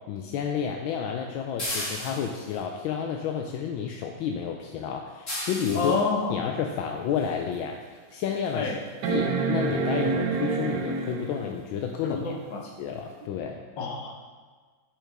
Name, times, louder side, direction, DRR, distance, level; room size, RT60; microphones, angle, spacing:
voice 1, 0.1-6.0 6.3-8.7 9.1-12.3 12.8-13.6, left 7 dB, 85° left, 3 dB, 1.4 m, -31 dB
sound 1, 1.6-2.6 5.3-6.0 7.5-7.6 8.2-8.3 8.6-8.7 9.0-9.1, left 1 dB, 40° left, 2.2 m, -34 dB
voice 2, 5.7-6.4 8.5-8.8 12.0-12.6 13.8-14.1, left 4 dB, 70° left, 0 dB, 1.7 m, -28 dB
sound 2, 6.9-7.0 7.6-7.7 9.0-11.5 13.2-13.3, right 4 dB, 65° right, 1.3 m, -27 dB
10.5 x 6.1 x 3.5 m, 1.5 s
omnidirectional pair, 2.1 m